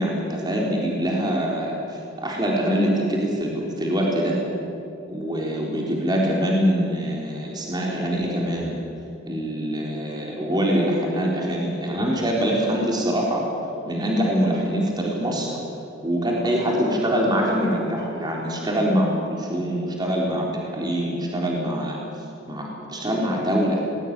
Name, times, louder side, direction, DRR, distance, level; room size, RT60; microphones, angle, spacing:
voice 1, 0.0-4.4 5.1-8.8 9.3-13.5 13.8-15.5 16.0-22.0 22.5-23.8, equal, 20° right, -2 dB, 4.1 m, -24 dB
20.0 x 17.5 x 9.8 m, 2.7 s
head